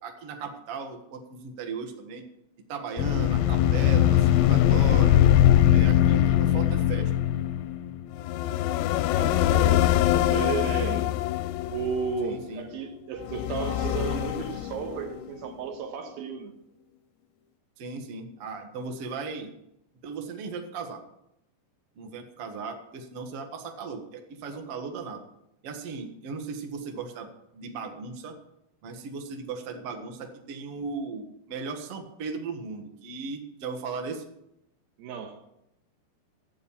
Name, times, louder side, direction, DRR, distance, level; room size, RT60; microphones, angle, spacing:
voice 1, 0.0-2.2 2.7-5.3 5.7-7.1 12.2-12.6 17.8-19.5 20.0-21.0 22.0-25.2 25.6-28.3 28.8-34.2, right 4 dB, 55° right, 1.7 m, -37 dB
sound 1, 3.0-12.5 13.2-15.3, left 12 dB, 85° left, 2.8 m, -22 dB
voice 2, 9.1-11.1 11.7-16.5 35.0-35.4, right 6 dB, 70° right, 2.9 m, -34 dB
14.0 x 9.3 x 7.2 m
omnidirectional pair, 4.9 m